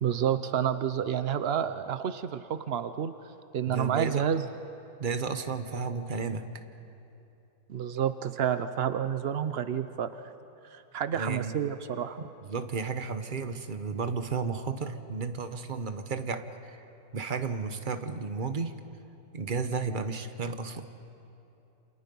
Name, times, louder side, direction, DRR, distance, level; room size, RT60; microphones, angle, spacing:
voice 1, 0.0-3.1 3.5-4.5 7.7-10.1 10.7-12.2, right 9 dB, 80° right, 11 dB, 0.5 m, -29 dB
voice 2, 3.7-4.2 5.0-6.5 11.1-11.6 12.4-16.8 17.1-18.8 19.3-20.9, right 4 dB, 35° right, 9 dB, 0.9 m, -33 dB
28.5 x 28.0 x 5.4 m, 2.8 s
omnidirectional pair, 1.9 m